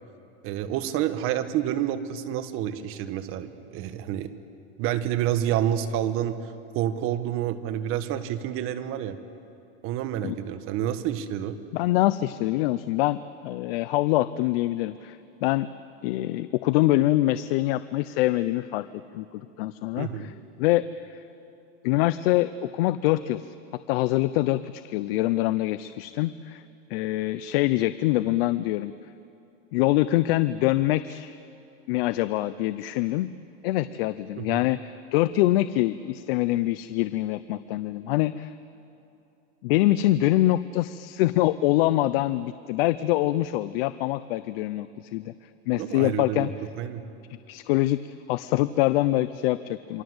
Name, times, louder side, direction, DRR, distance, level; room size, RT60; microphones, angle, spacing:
voice 1, 0.4-4.3 4.8-9.2 9.8-11.6 20.0-20.3 34.4-34.6 45.7-46.5 46.8-47.0, right 11 dB, 40° right, 10 dB, 1.5 m, -29 dB
voice 2, 11.7-13.2 13.4-15.7 16.0-18.9 19.1-20.1 20.6-21.2 21.8-23.4 23.9-26.6 26.9-28.9 29.7-31.4 31.9-33.3 33.6-38.5 39.6-45.3 45.7-46.5 47.5-50.0, left 16 dB, 60° left, 14 dB, 0.7 m, -24 dB
28.0 x 24.5 x 8.0 m, 2.7 s
supercardioid pair, 155°, 34 cm